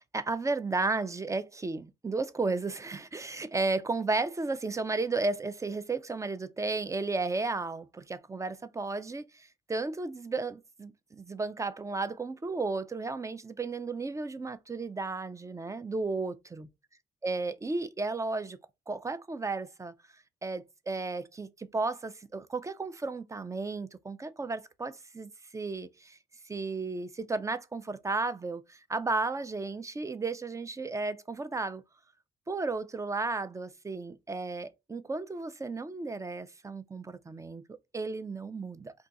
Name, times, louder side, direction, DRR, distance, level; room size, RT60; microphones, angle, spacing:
voice 1, 0.1-16.7 17.2-18.6 18.9-19.9 20.4-26.2 26.5-31.8 32.5-37.6 37.9-38.9, right 3 dB, 15° right, 0.4 m, -34 dB
2.4 x 2.3 x 3.9 m
cardioid pair, 90°, 20 cm